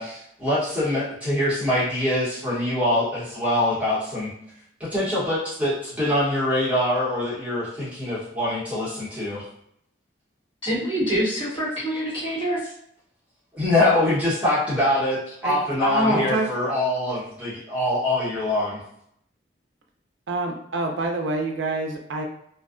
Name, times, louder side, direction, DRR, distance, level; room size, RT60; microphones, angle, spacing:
voice 1, 0.0-4.3 4.8-9.4 13.5-18.8, left 1 dB, 10° right, -10 dB, 0.9 m, -24 dB
voice 2, 10.6-12.7 15.8-16.3, equal, 30° left, -10 dB, 1.5 m, -24 dB
voice 3, 16.1-16.5 20.3-22.2, right 3 dB, 85° right, 2 dB, 0.4 m, -27 dB
2.5 x 2.2 x 2.4 m, 0.72 s
head